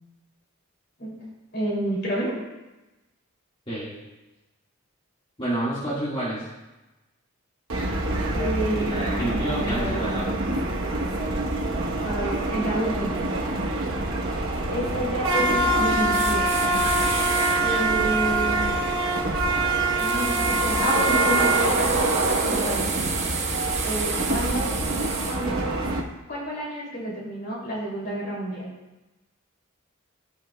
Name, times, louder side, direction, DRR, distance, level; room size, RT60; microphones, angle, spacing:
voice 1, 1.5-2.3 8.3-10.1 12.0-13.2 13.7-13.8 14.7-16.5 17.6-18.8 20.0-22.1 22.4-22.9 23.8-24.7 25.3-26.0 26.3-28.7, right 1 dB, 50° left, -4 dB, 2.7 m, -29 dB
voice 2, 5.4-6.4 8.9-10.3, right 1 dB, 25° left, -9 dB, 1.7 m, -29 dB
sound 1, 7.7-26.0, right 2 dB, 65° right, 1.0 m, -25 dB
sound 2, 16.1-17.6 20.0-25.4, right 5 dB, 30° right, 0.9 m, -30 dB
16.0 x 5.7 x 2.2 m, 1.0 s
head